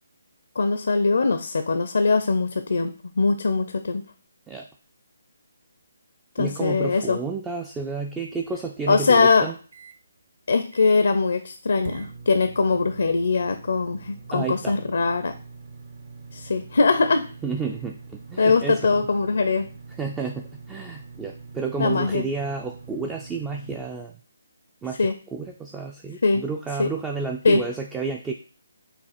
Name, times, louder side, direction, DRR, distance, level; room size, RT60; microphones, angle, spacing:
voice 1, 0.6-4.0 6.4-7.2 8.9-9.5 10.5-15.3 16.3-17.3 18.4-19.7 21.8-22.2 25.0-25.1 26.2-26.4 26.8-26.9 27.4-27.6, left 4 dB, 60° left, 9 dB, 0.4 m, -21 dB
voice 2, 6.4-9.5 14.3-14.8 17.4-19.0 19.9-24.1 24.8-28.3, right 4 dB, 10° right, 2 dB, 0.3 m, -31 dB
sound 1, 8.2-10.0 10.4-10.5 10.7-11.2 11.8-23.9, right 4 dB, 50° right, 0.7 m, -44 dB
5.2 x 2.4 x 4.1 m, 0.39 s
figure-of-eight pair, 145°, 0 cm